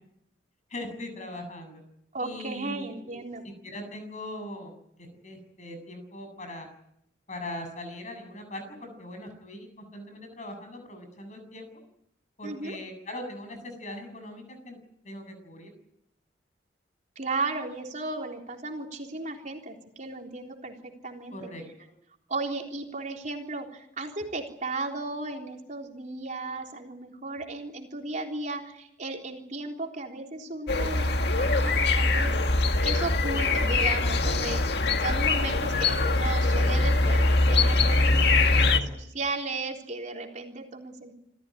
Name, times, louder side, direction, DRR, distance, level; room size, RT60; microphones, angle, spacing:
voice 1, 0.7-1.8 2.2-6.7 7.3-11.7 12.4-14.8 15.0-15.7 21.3-21.6, left 1 dB, 45° left, 7 dB, 7.7 m, -40 dB
voice 2, 2.1-3.4 12.4-12.8 17.2-21.5 22.3-32.4 32.8-41.1, right 3 dB, 45° right, 2 dB, 3.7 m, -35 dB
sound 1, 30.7-38.8, left 2 dB, 65° left, 1.9 m, -23 dB
28.0 x 15.0 x 10.0 m, 0.76 s
head